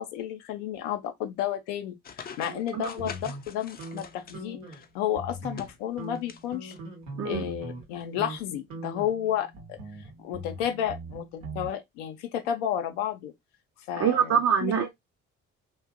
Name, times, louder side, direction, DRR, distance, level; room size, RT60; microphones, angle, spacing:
voice 1, 0.0-6.7 7.2-9.8 10.2-13.3 13.9-14.7, left 10 dB, 75° left, 0.6 m, -32 dB
sound 1, 2.0-4.9 5.3-6.4 6.7-6.8 8.0-8.1, left 7 dB, 25° left, 0.4 m, -44 dB
voice 2, 2.5-2.9 7.2-7.5 14.0-14.9, right 7 dB, 40° right, 0.5 m, -25 dB
sound 2, 3.0-4.8 5.1-5.7 6.0-7.9 8.2-8.4 8.7-11.7, right 2 dB, 85° right, 0.8 m, -41 dB
2.5 x 2.2 x 2.4 m
hypercardioid pair, 50°, 37 cm